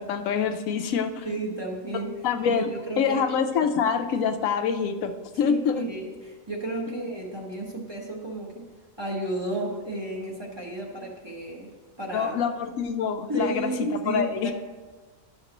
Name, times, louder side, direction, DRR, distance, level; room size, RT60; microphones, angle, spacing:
voice 1, 0.1-1.3 2.2-5.1 5.4-5.9 12.1-14.5, left 6 dB, 85° left, 7 dB, 1.0 m, -26 dB
voice 2, 1.2-3.2 3.6-3.7 5.4-8.7 9.0-11.7 12.0-12.4 13.3-14.5, right 2 dB, 20° right, -2 dB, 1.1 m, -32 dB
11.0 x 6.5 x 2.9 m, 1.3 s
omnidirectional pair, 1.4 m